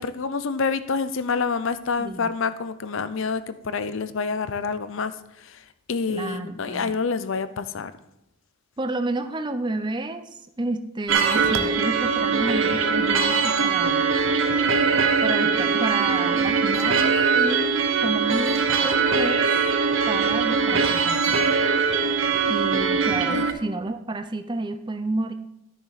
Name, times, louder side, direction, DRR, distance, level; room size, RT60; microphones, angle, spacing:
voice 1, 0.0-5.1 5.9-7.9 23.3-23.5, left 5 dB, 60° left, 13 dB, 0.6 m, -27 dB
voice 2, 2.0-2.3 6.1-7.0 8.8-10.3 10.6-14.1 15.2-19.4 20.1-21.4 22.5-25.3, right 2 dB, 20° right, 9 dB, 0.5 m, -30 dB
sound 1, 11.1-23.5, right 5 dB, 60° right, 0.8 m, -21 dB
12.5 x 6.9 x 4.1 m, 0.88 s
head